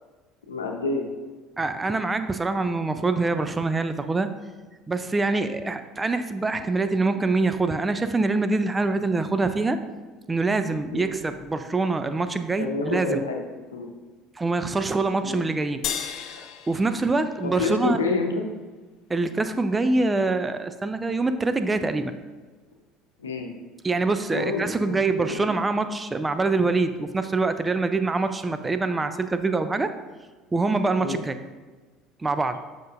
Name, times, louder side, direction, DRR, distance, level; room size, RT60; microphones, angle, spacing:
voice 1, 0.5-1.1 10.9-11.1 12.6-13.4 13.7-13.9 15.2-15.4 17.4-18.4 23.2-23.5 24.3-25.5 31.0-31.2, left 3 dB, 85° left, 2 dB, 0.7 m, -28 dB
voice 2, 1.6-4.3 4.9-9.8 10.3-13.2 14.4-15.8 16.7-18.0 19.1-22.1 23.8-29.9 30.5-31.3 32.2-32.6, right 3 dB, 20° right, 9 dB, 0.4 m, -25 dB
sound 1, 15.8-18.4, left 8 dB, 55° left, 0.4 m, -35 dB
7.7 x 5.3 x 2.5 m, 1.3 s
hypercardioid pair, 65°, 0 cm